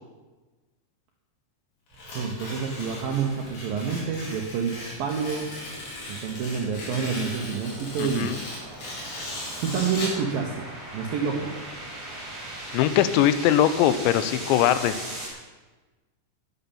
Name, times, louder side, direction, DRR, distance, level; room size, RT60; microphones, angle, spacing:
Tearing, 1.9-10.2, left 1 dB, 55° left, 5.7 m, -38 dB
sound 1, 1.9-15.3, right 1 dB, 35° right, 5.5 m, -41 dB
voice 1, 2.1-4.7 5.0-5.5 6.1-8.3 9.6-10.7 10.9-11.5, right 6 dB, 70° right, 1 dB, 2.2 m, -28 dB
voice 2, 8.0-8.4 12.7-15.0, left 11 dB, 80° left, 13 dB, 2.9 m, -21 dB
11.0 x 10.5 x 7.1 m, 1.2 s
omnidirectional pair, 5.5 m